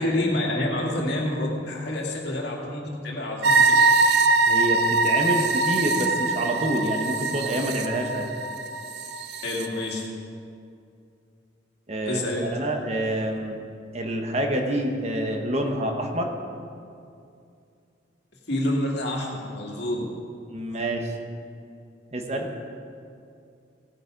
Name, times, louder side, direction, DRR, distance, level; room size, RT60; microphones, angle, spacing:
voice 1, 0.0-3.7 9.4-10.0 12.0-12.5 18.5-20.0, left 1 dB, 65° left, -1 dB, 2.2 m, -27 dB
sound 1, 3.4-9.7, right 3 dB, 60° right, 0.7 m, -22 dB
voice 2, 4.5-8.3 11.9-12.2 12.5-13.6 13.9-16.3 20.5-21.1 22.1-22.5, right 1 dB, 35° right, 3 dB, 1.1 m, -27 dB
16.5 x 8.2 x 5.2 m, 2.4 s
head